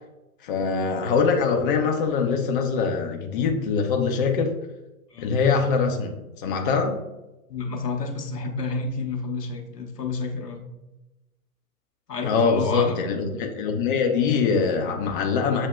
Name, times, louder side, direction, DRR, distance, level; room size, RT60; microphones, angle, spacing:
voice 1, 0.4-4.5 5.2-6.9 12.2-15.7, left 5 dB, 35° left, 2 dB, 0.6 m, -23 dB
voice 2, 7.5-10.6 12.1-13.0, left 4 dB, 85° left, 2 dB, 1.0 m, -30 dB
7.3 x 2.7 x 2.2 m, 0.99 s
figure-of-eight pair, 110°, 47 cm